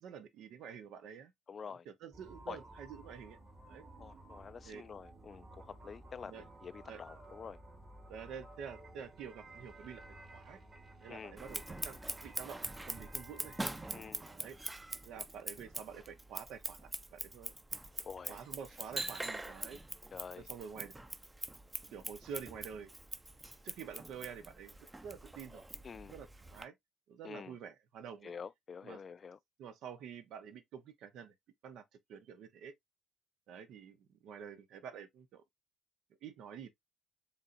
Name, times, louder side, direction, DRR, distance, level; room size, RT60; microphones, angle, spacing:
voice 1, 0.0-1.3 1.6-3.4 3.7-3.9 4.6-4.8 6.2-6.4 6.9-7.0 8.1-10.6 11.0-12.6 12.9-13.5 14.3-14.6 15.0-17.5 18.3-19.8 20.5-20.9 21.9-22.9 23.6-25.6 26.1-26.7 27.1-28.3 28.8-29.0 29.6-31.3 31.6-31.8 32.1-32.7 33.5-35.4 36.2-36.7, right 7 dB, 65° right, 0.8 m, -48 dB
voice 2, 1.5-1.9 2.5-2.6 4.0-7.6 11.1-11.4 13.9-14.2 18.0-18.5 20.1-20.5 25.8-26.2 27.2-27.6 28.2-29.4, left 6 dB, 45° left, 0.4 m, -47 dB
sound 1, 2.1-15.7, right 1 dB, 40° right, 2.4 m, -55 dB
Scissors, 11.4-26.6, right 2 dB, 20° right, 0.7 m, -44 dB
5.2 x 3.3 x 2.5 m
hypercardioid pair, 45°, 0 cm